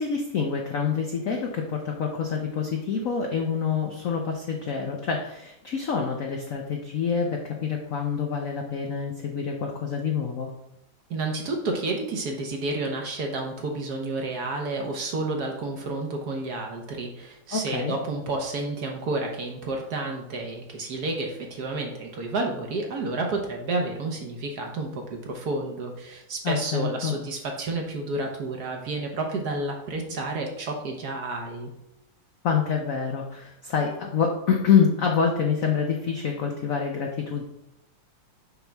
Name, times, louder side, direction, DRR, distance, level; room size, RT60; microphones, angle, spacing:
voice 1, 0.0-10.5 17.5-17.9 26.4-27.2 32.4-37.4, left 6 dB, 85° left, 2 dB, 0.7 m, -26 dB
voice 2, 11.1-31.7, right 2 dB, 60° right, 2 dB, 1.2 m, -30 dB
6.1 x 5.7 x 3.4 m, 0.84 s
omnidirectional pair, 2.3 m